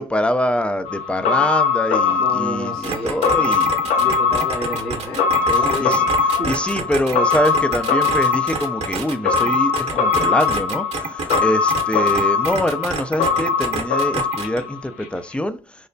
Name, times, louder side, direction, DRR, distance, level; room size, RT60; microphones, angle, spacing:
voice 1, 0.0-3.7 4.3-4.5 5.8-6.0 6.5-10.9 11.4-15.6, left 1 dB, 10° left, 0.4 m, -24 dB
sound 1, 0.8-15.0 15.3-15.4, left 5 dB, 65° left, 0.7 m, -21 dB
voice 2, 2.2-3.6 4.0-6.1 6.4-6.5, left 1 dB, 85° left, 1.3 m, -30 dB
sound 2, 2.8-11.4 11.7-14.6, right 5 dB, 50° right, 0.7 m, -28 dB
3.2 x 2.1 x 2.6 m
hypercardioid pair, 55°, 14 cm